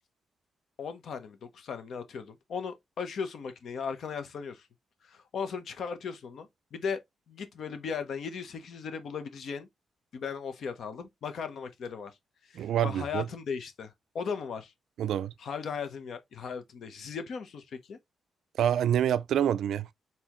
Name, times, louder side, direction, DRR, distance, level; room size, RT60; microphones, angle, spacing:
voice 1, 0.8-4.7 5.0-7.0 7.3-9.7 10.1-12.1 12.4-14.7 15.4-18.0, left 6 dB, 60° left, 1.0 m, -37 dB
voice 2, 12.5-13.3 15.0-15.3 18.6-19.9, right 10 dB, 90° right, 0.3 m, -27 dB
4.2 x 4.1 x 3.0 m
wide cardioid pair, 155°, 0 cm